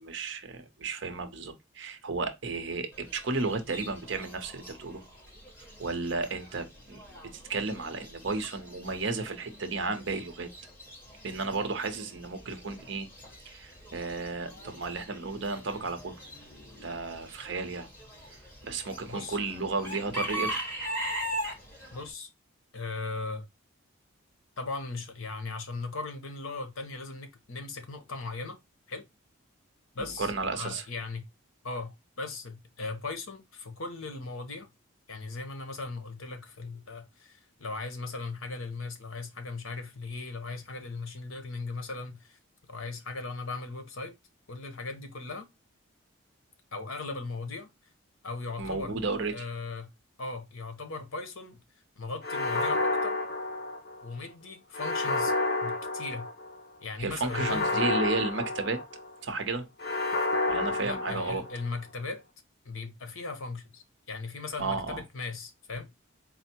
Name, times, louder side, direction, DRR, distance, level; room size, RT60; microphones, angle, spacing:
voice 1, 0.0-5.0 5.8-7.2 7.5-10.5 11.2-13.1 13.5-16.2 16.8-17.9 18.6-20.6 30.2-30.8 48.6-49.5 57.0-58.8 59.2-59.7 60.5-61.4 64.6-65.0, right 3 dB, 55° right, 0.7 m, -33 dB
Chicken rooster / Bird, 2.9-22.1, equal, 10° left, 1.3 m, -41 dB
voice 2, 19.1-19.4 21.9-22.3 22.7-23.4 24.6-28.6 28.9-29.1 29.9-31.2 31.6-34.7 35.1-42.4 42.7-44.1 44.5-45.5 46.7-47.7 48.2-48.9 49.3-49.9 50.2-51.6 52.0-53.2 54.0-55.3 55.6-56.3 56.8-57.8 60.8-62.2 62.6-65.9, left 3 dB, 70° left, 0.9 m, -38 dB
sound 1, 52.2-54.1 54.7-56.6 57.3-59.1 59.8-61.7, left 2 dB, 45° left, 0.9 m, -30 dB
4.2 x 2.0 x 4.3 m
head